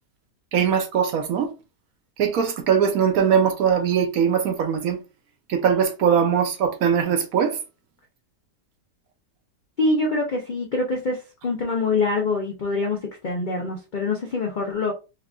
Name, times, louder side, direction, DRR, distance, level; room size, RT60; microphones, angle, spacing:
voice 1, 0.5-1.5 2.2-5.0 5.5-7.6, right 7 dB, 70° right, 1.0 m, -21 dB
voice 2, 9.8-14.9, left 3 dB, 85° left, 0.4 m, -25 dB
4.6 x 2.4 x 2.3 m
omnidirectional pair, 1.7 m